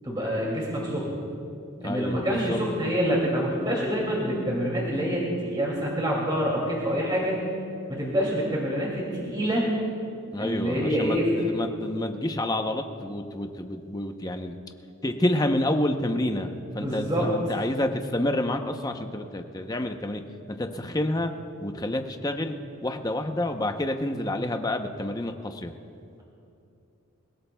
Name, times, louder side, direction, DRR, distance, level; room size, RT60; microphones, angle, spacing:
voice 1, 0.0-1.2 1.8-7.4 7.9-9.7 10.4-11.3 16.7-17.3, equal, 20° right, -4 dB, 2.4 m, -26 dB
voice 2, 1.8-2.6 10.3-14.5 15.0-20.2 20.5-21.3 21.6-25.7, left 1 dB, 20° left, 6 dB, 0.7 m, -29 dB
28.0 x 17.0 x 2.3 m, 2.6 s
head